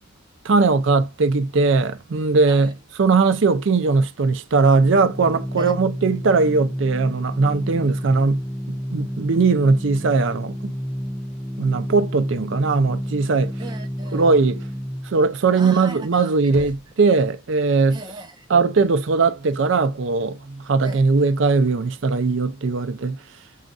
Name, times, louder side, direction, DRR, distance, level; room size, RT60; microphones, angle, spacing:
voice 1, 0.4-2.7 3.0-8.4 8.7-10.7 11.6-13.5 14.1-14.6 15.1-18.0 18.5-23.2, right 4 dB, 65° right, 0.5 m, -19 dB
Organ, 4.5-15.3, equal, 10° left, 0.6 m, -30 dB
voice 2, 13.6-14.4 15.5-16.9 17.9-18.5 20.8-21.1, right 2 dB, 20° right, 0.9 m, -38 dB
Knock, 16.5-17.4, right 1 dB, 90° right, 0.9 m, -41 dB
6.4 x 2.5 x 2.3 m
head